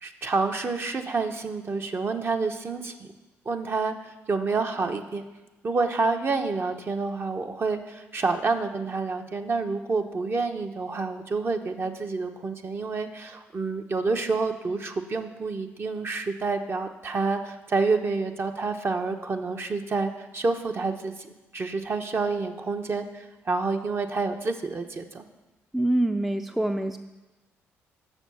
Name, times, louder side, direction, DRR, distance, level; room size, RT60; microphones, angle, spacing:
voice 1, 0.0-3.1 3.5-5.3 5.6-21.1 21.5-25.2, right 4 dB, 40° right, 5 dB, 1.0 m, -28 dB
voice 2, 25.7-27.0, right 1 dB, 5° right, 7 dB, 0.5 m, -25 dB
7.1 x 6.3 x 7.0 m, 1.1 s
hypercardioid pair, 55°, 6 cm